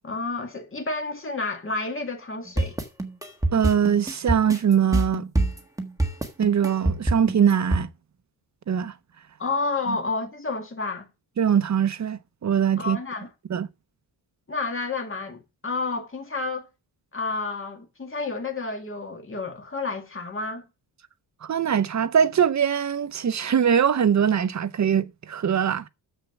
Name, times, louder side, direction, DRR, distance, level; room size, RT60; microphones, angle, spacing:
voice 1, 0.0-2.8 9.4-11.1 12.8-13.3 14.5-16.7 17.1-20.6, left 3 dB, 30° left, 2.2 m, -30 dB
sound 1, 2.6-7.8, right 2 dB, 5° right, 1.5 m, -25 dB
voice 2, 3.5-5.3 6.4-7.9 8.7-8.9 9.9-10.0 11.4-13.0 13.5-13.7 21.4-25.9, right 8 dB, 40° right, 0.6 m, -22 dB
7.2 x 6.7 x 7.0 m
wide cardioid pair, 165°, 45 cm